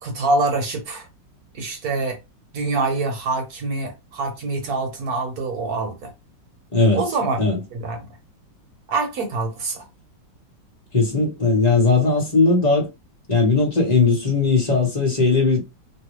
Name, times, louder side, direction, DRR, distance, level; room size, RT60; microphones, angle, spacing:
voice 1, 0.0-1.1 1.5-2.2 2.5-6.1 6.9-7.4 7.7-8.1 8.9-9.9, right 3 dB, 55° right, 1.4 m, -25 dB
voice 2, 6.7-7.0 7.4-7.6 10.9-12.9 13.3-15.7, left 3 dB, 25° left, 1.0 m, -18 dB
3.3 x 2.6 x 3.1 m
omnidirectional pair, 2.1 m